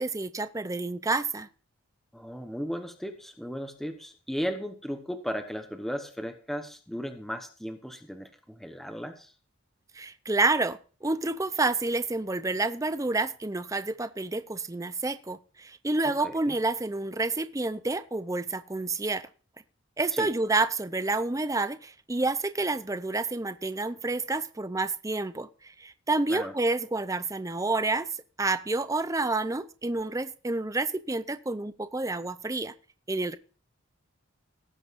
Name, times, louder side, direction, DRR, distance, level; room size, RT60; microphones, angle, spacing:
voice 1, 0.0-1.5 9.9-19.3 20.0-28.1 28.4-32.7 33.1-33.4, right 3 dB, 15° right, 13 dB, 0.5 m, -29 dB
voice 2, 2.1-9.3 16.2-16.6 20.1-20.3 26.3-26.5, equal, ahead, 6 dB, 1.0 m, -36 dB
18.5 x 9.0 x 2.5 m, 0.38 s
head